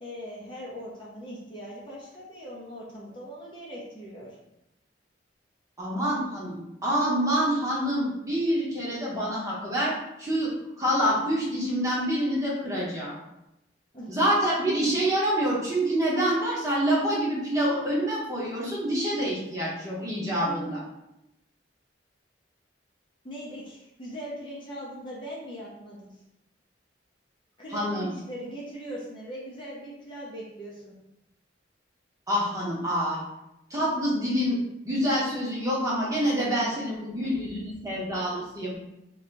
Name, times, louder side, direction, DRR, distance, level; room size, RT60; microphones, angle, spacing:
voice 1, 0.0-4.4 13.9-14.1 23.2-26.1 27.6-31.0, equal, 25° left, -5 dB, 0.6 m, -40 dB
voice 2, 5.8-10.5 10.8-13.1 14.1-20.8 27.7-28.1 32.3-33.2 33.7-34.6 34.8-38.7, equal, 20° right, -6 dB, 0.9 m, -26 dB
2.7 x 2.3 x 3.9 m, 0.87 s
head